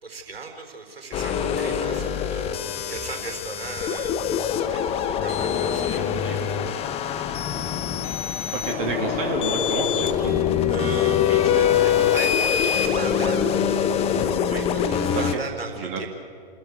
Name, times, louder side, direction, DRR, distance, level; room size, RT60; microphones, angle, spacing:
voice 1, 0.0-7.4 10.7-13.6 14.4-16.1, right 4 dB, 75° right, 3 dB, 4.1 m, -37 dB
sound 1, 1.1-15.4, left 8 dB, 20° left, 1.0 m, -24 dB
voice 2, 8.5-10.4 15.1-15.4 15.8-16.0, right 4 dB, 35° right, 1 dB, 2.8 m, -29 dB
29.0 x 13.5 x 9.6 m, 2.1 s
figure-of-eight pair, 115°, 30 cm